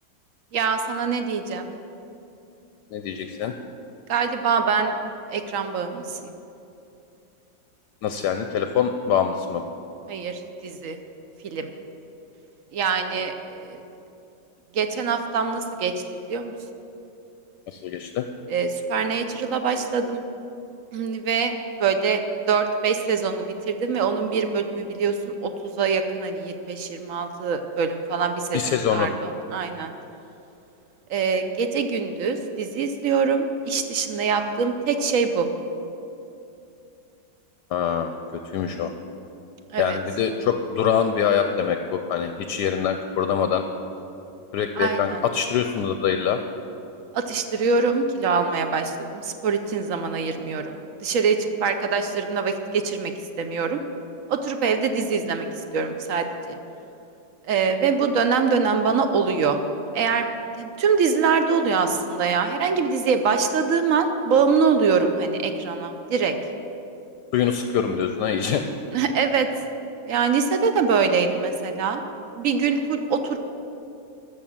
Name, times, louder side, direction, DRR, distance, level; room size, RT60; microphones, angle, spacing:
voice 1, 0.5-1.7 4.1-4.9 5.3-6.4 10.1-11.0 11.4-11.7 12.7-13.8 14.7-16.5 18.5-20.2 20.9-21.5 21.8-22.2 22.5-29.9 31.1-35.5 39.7-40.0 44.8-45.2 47.1-53.1 53.4-53.8 54.3-55.5 55.7-56.6 57.5-59.6 59.9-60.3 60.6-66.3 68.9-69.5 70.0-72.0 72.4-73.4, right 5 dB, 65° right, 7 dB, 0.8 m, -24 dB
voice 2, 2.9-3.5 8.0-9.6 17.7-18.2 28.5-29.1 37.7-38.1 38.5-38.9 39.8-43.6 44.5-46.4 67.3-68.6, left 8 dB, 75° left, 7 dB, 1.1 m, -24 dB
13.0 x 6.7 x 7.3 m, 2.8 s
omnidirectional pair, 2.0 m